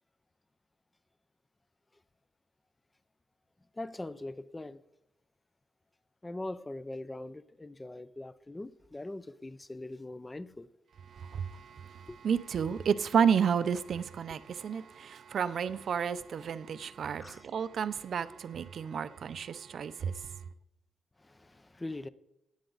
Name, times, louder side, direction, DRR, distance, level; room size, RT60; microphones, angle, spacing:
voice 1, 3.7-4.8 6.2-10.7 12.1-12.2 17.2-17.5 21.2-22.1, left 2 dB, 10° left, 0.4 m, -42 dB
voice 2, 11.1-20.3, right 7 dB, 50° right, 0.5 m, -31 dB
18.0 x 9.6 x 3.9 m
wide cardioid pair, 165°, 0 cm